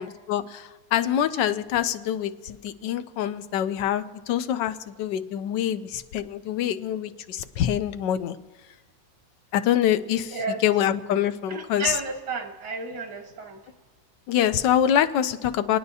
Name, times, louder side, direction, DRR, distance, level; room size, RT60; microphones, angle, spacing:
voice 1, 0.0-8.4 9.5-12.0 14.3-15.8, left 10 dB, 85° left, 11 dB, 1.3 m, -25 dB
voice 2, 11.5-13.6, right 4 dB, 80° right, 3 dB, 2.0 m, -32 dB
28.0 x 9.7 x 2.7 m, 1.3 s
omnidirectional pair, 1.9 m